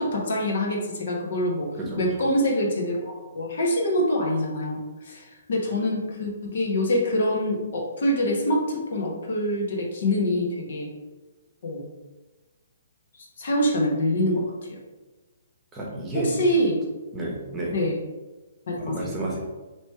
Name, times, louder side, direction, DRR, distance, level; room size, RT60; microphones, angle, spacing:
voice 1, 0.0-1.7 2.0-10.9 11.6-11.8 13.4-14.4 14.7-14.8 16.1-16.8 17.7-18.0 18.7-19.1, left 1 dB, 65° left, -1 dB, 1.1 m, -25 dB
voice 2, 1.8-2.1 15.7-16.4 17.1-17.8 18.8-19.4, right 1 dB, 15° right, -3 dB, 1.0 m, -30 dB
3.2 x 3.0 x 4.5 m, 1.2 s
hypercardioid pair, 150°, 0 cm